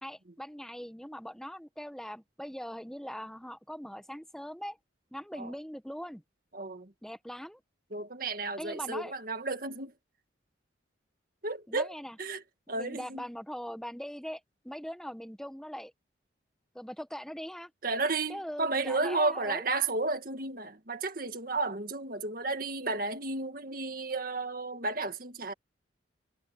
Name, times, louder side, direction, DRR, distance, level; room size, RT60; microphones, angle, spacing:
voice 1, 0.0-4.8 5.1-6.2 7.0-7.6 8.6-9.1 11.7-12.2 12.7-14.4 14.6-15.9 16.7-17.7 18.3-19.6, equal, 5° left, 1.1 m, -41 dB
voice 2, 6.5-6.9 7.9-9.9 11.4-12.4 12.7-13.3 17.8-25.5, right 3 dB, 45° right, 2.0 m, -33 dB
head